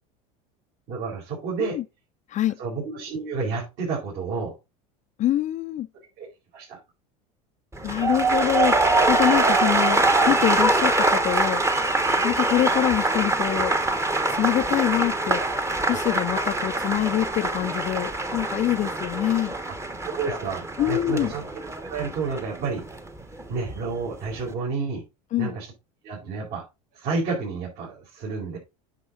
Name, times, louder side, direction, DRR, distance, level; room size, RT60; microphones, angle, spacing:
voice 1, 0.9-1.8 2.6-4.5 6.2-6.3 6.5-6.8 15.9-16.0 20.0-21.5 21.9-22.8 23.5-25.0 25.4-25.7 26.0-26.6 26.9-28.6, right 4 dB, 60° right, 4.9 m, -30 dB
voice 2, 5.2-5.9 7.8-11.6 12.2-13.8 14.3-15.4 15.9-19.5 20.8-21.3 25.3-25.6, left 13 dB, 40° left, 0.6 m, -25 dB
sound 1, 7.7-23.8 24.1-24.5, right 2 dB, 15° right, 1.2 m, -24 dB
9.5 x 6.0 x 3.9 m
supercardioid pair, 100°, 20 cm